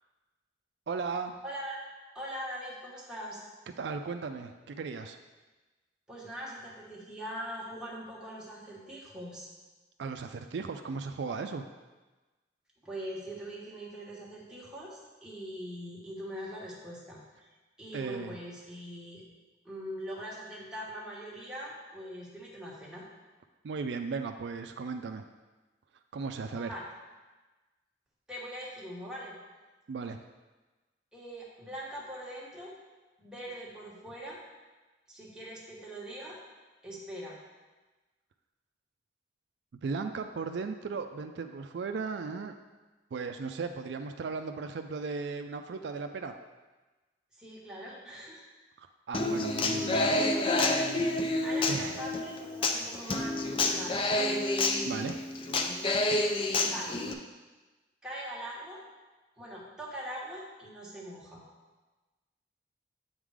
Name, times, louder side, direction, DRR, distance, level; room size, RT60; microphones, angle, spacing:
voice 1, 0.9-1.3 3.8-5.2 10.0-11.7 17.9-18.4 23.6-25.2 26.1-26.7 29.9-30.2 39.8-42.5 43.1-46.3 48.8-50.9 51.7-52.0 54.9-55.2, right 4 dB, 70° right, 6 dB, 0.4 m, -36 dB
voice 2, 1.4-1.8 2.1-3.4 6.1-9.5 12.8-17.5 17.8-19.2 19.6-23.0 26.5-26.8 28.3-29.4 31.1-32.7 33.2-34.4 35.1-36.4 36.8-37.4 47.4-48.4 51.4-54.4 56.6-57.0 58.0-58.8 59.4-61.4, equal, 5° right, -6 dB, 1.3 m, -42 dB
Human voice / Acoustic guitar, 49.1-57.1, left 2 dB, 30° left, 0.4 m, -29 dB
7.9 x 3.7 x 4.8 m, 1.2 s
head